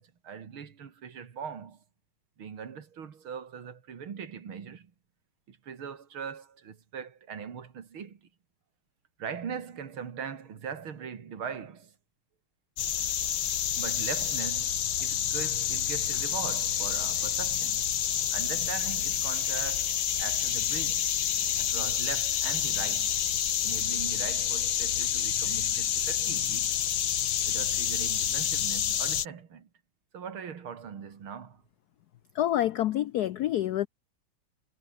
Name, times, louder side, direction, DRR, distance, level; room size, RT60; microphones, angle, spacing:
voice 1, 0.0-1.8 2.4-4.9 5.5-8.3 9.2-11.9 13.8-17.9 18.3-21.2 21.6-23.2 23.6-26.8 27.4-29.7 30.1-31.6, right 7 dB, 75° right, 3.0 m, -40 dB
sound 1, 12.8-29.3, left 10 dB, 65° left, 2.0 m, -28 dB
voice 2, 32.3-33.9, left 12 dB, 85° left, 0.8 m, -27 dB
omnidirectional pair, 2.3 m